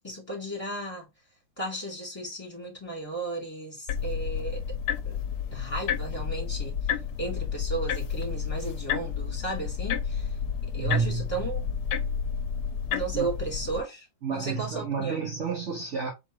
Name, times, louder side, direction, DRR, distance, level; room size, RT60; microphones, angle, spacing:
voice 1, 0.0-1.1 1.6-4.6 5.0-5.2 5.5-6.9 7.2-11.6 12.9-15.3, right 2 dB, 15° left, 2.8 m, -35 dB
sound 1, 3.9-13.8, left 7 dB, 75° left, 1.2 m, -31 dB
voice 2, 10.7-11.2 13.1-13.3 14.2-16.1, right 5 dB, 50° right, 1.1 m, -30 dB
4.3 x 3.8 x 3.1 m
omnidirectional pair, 1.8 m